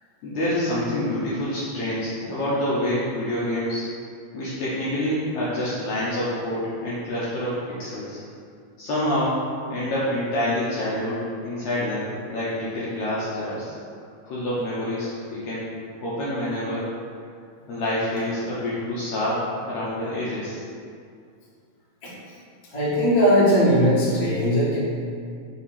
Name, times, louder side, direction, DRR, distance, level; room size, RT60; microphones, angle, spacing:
voice 1, 0.2-3.8 4.3-8.2 8.8-9.4 9.7-13.7 14.3-15.7 16.0-16.8 17.7-20.6, left 1 dB, 65° left, -9 dB, 2.0 m, -27 dB
voice 2, 22.7-24.8, equal, 40° left, -9 dB, 1.5 m, -19 dB
6.3 x 3.1 x 5.7 m, 2.3 s
omnidirectional pair, 4.0 m